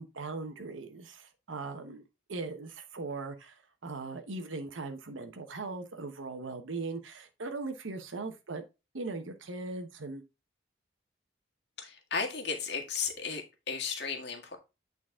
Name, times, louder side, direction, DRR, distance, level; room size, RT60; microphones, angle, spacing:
voice 1, 0.0-8.6 8.9-10.2, right 3 dB, 80° right, 0.9 m, -39 dB
voice 2, 11.8-13.4 13.7-14.6, left 5 dB, 55° left, 1.7 m, -34 dB
8.8 x 4.0 x 3.6 m
head